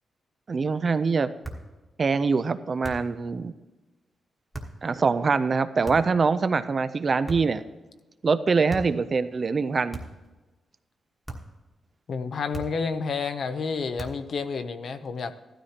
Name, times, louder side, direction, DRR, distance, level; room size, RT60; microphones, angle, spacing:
voice 1, 0.5-1.3 2.0-3.5 4.8-7.6 8.2-10.0, right 4 dB, 30° right, 13 dB, 0.4 m, -24 dB
sound 1, 1.4-1.7 2.8-3.2 4.5-4.8 5.8-6.2 7.2-7.7 8.7-9.0 9.9-10.3 11.2-11.6 12.5-12.9 14.0-14.3, right 2 dB, 5° right, 1.3 m, -38 dB
voice 2, 12.1-15.3, left 5 dB, 50° left, 10 dB, 0.6 m, -30 dB
15.5 x 12.5 x 2.9 m, 1.2 s
wide cardioid pair, 170°, 0 cm